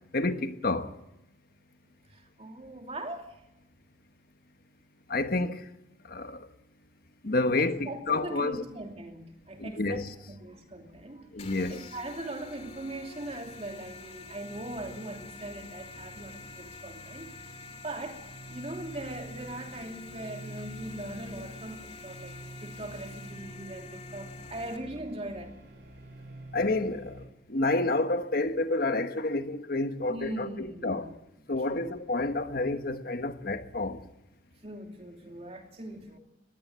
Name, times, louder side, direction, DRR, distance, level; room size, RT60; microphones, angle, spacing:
voice 1, 0.1-0.9 5.1-5.6 6.1-6.4 7.2-8.6 9.6-10.1 11.3-11.8 26.5-27.2 27.5-31.1 31.5-34.0, left 2 dB, 55° left, 1.3 m, -29 dB
voice 2, 2.1-3.3 7.6-11.3 11.7-17.3 17.7-18.2 18.5-25.5 30.1-31.2 31.7-31.9 34.6-36.2, right 1 dB, 35° right, 2.8 m, -40 dB
sound 1, 10.9-27.3, right 1 dB, 70° right, 4.4 m, -49 dB
sound 2, 11.4-24.8, left 4 dB, 35° left, 2.5 m, -48 dB
21.0 x 16.0 x 8.1 m
head